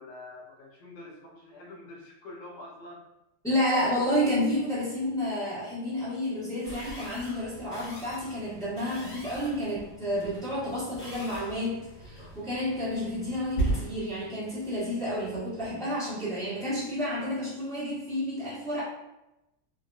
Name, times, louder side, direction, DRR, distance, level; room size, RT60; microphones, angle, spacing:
voice 1, 0.0-3.1, left 2 dB, 65° left, -2 dB, 1.2 m, -46 dB
voice 2, 3.4-18.8, left 1 dB, 5° left, -11 dB, 0.3 m, -30 dB
sound 1, 6.6-15.8, right 2 dB, 40° left, 1.3 m, -38 dB
3.4 x 2.6 x 2.3 m, 0.93 s
omnidirectional pair, 2.4 m